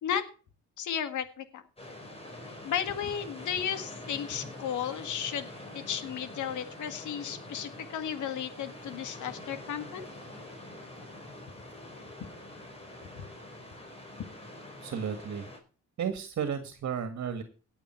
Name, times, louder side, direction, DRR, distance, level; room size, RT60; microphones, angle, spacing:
voice 1, 0.8-1.6 2.6-5.5 5.7-10.1, left 8 dB, 80° left, 9 dB, 1.9 m, -34 dB
sound 1, 1.8-15.6, left 1 dB, 20° left, 4.8 m, -45 dB
voice 2, 14.8-15.5 16.0-17.4, right 7 dB, 60° right, 8 dB, 1.9 m, -33 dB
18.0 x 7.2 x 4.5 m, 0.37 s
cardioid pair, 90°, 30 cm